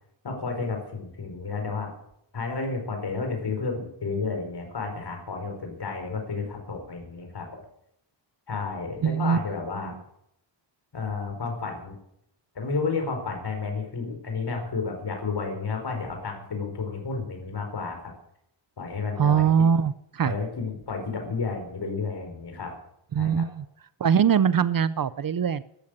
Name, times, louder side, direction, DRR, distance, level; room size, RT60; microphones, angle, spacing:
voice 1, 0.2-1.9 2.3-7.6 8.5-9.9 10.9-12.0 12.5-18.0 18.8-19.4 20.2-22.7 23.2-23.4, left 4 dB, 60° left, 4 dB, 4.8 m, -31 dB
voice 2, 9.0-9.4 9.8-10.0 19.2-20.3 23.1-23.6 24.0-25.6, right 7 dB, 50° right, 17 dB, 0.6 m, -22 dB
14.0 x 12.0 x 9.0 m, 0.76 s
wide cardioid pair, 145°, 46 cm